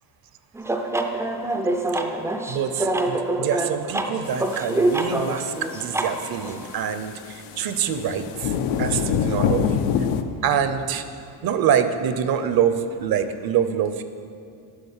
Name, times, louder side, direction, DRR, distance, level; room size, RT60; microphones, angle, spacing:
sound 1, 0.5-6.7, right 2 dB, 5° right, 0.3 m, -25 dB
voice 1, 2.5-8.5 8.8-9.8 10.4-11.0 11.4-14.0, right 8 dB, 50° right, 10 dB, 0.6 m, -25 dB
sound 2, 4.3-10.2, left 7 dB, 90° left, 0.7 m, -27 dB
8.1 x 6.1 x 7.2 m, 2.4 s
cardioid pair, 135°, 48 cm